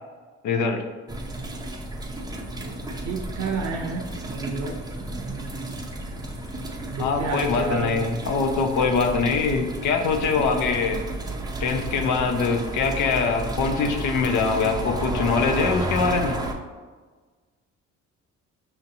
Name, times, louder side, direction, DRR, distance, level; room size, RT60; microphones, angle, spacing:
voice 1, 0.4-0.8 7.0-11.0 11.6-16.4, left 4 dB, 75° left, 5 dB, 0.6 m, -23 dB
sound 1, 1.1-16.5, right 2 dB, 15° right, 0.5 m, -32 dB
voice 2, 2.6-5.5 6.9-8.1, right 3 dB, 65° right, 2 dB, 0.5 m, -31 dB
5.7 x 2.7 x 2.6 m, 1.4 s
cardioid pair, 90°, 30 cm